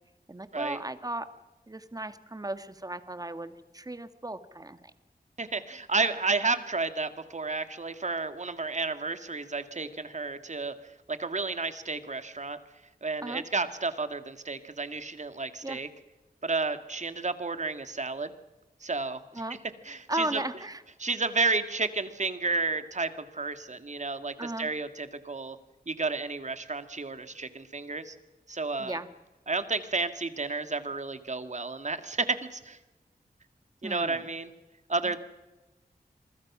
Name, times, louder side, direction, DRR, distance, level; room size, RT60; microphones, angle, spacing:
voice 1, 0.3-1.3 1.7-4.8 13.2-13.4 15.6-15.8 19.3-19.6 20.1-20.8 24.4-24.7 28.8-29.1 33.8-34.3 35.0-35.2, right 1 dB, 20° right, 11 dB, 1.8 m, -36 dB
voice 2, 5.4-10.7 11.1-12.6 13.0-15.9 16.4-18.3 18.8-19.2 19.9-20.4 21.0-25.6 25.9-28.1 28.5-29.0 29.5-32.8 33.8-34.5 34.9-35.2, right 3 dB, 45° right, 10 dB, 2.0 m, -31 dB
27.5 x 23.5 x 6.2 m, 1.1 s
wide cardioid pair, 90°, 16 cm